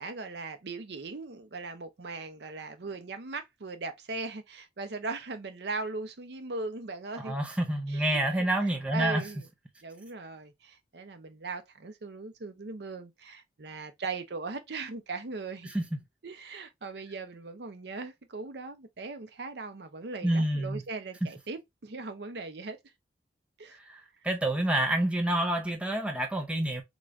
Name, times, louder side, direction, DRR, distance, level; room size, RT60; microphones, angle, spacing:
voice 1, 0.0-7.3 7.9-8.2 8.6-9.5 9.8-15.7 16.2-22.8 23.6-23.8, right 3 dB, 65° right, 0.6 m, -39 dB
voice 2, 7.2-9.2 15.6-15.8 20.2-20.8 23.9-26.8, right 1 dB, 5° right, 0.6 m, -28 dB
3.8 x 2.4 x 3.0 m
head